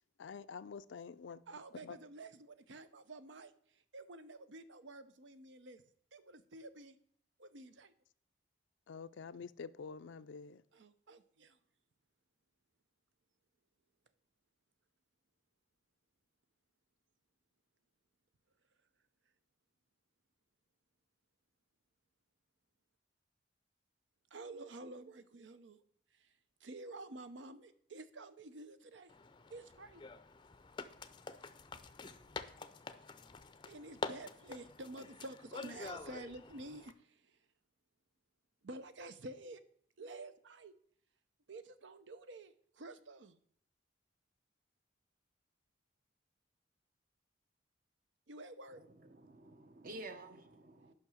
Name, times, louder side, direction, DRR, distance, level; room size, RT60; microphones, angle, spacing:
voice 1, 0.2-1.4 1.8-2.0 8.9-10.6, left 5 dB, 80° left, 0.4 m, -47 dB
voice 2, 1.5-5.8 6.1-7.0 7.4-7.9 10.7-11.6 24.3-25.8 26.1-26.3 26.6-29.1 29.5-30.0 33.7-37.4 38.6-39.6 40.0-40.7 41.5-43.4 48.3-48.8, right 2 dB, 75° right, 0.7 m, -50 dB
sound 1, 29.1-36.9, left 4 dB, 25° left, 0.5 m, -47 dB
voice 3, 48.7-50.9, right 2 dB, 50° right, 0.9 m, -51 dB
9.7 x 5.8 x 6.3 m
head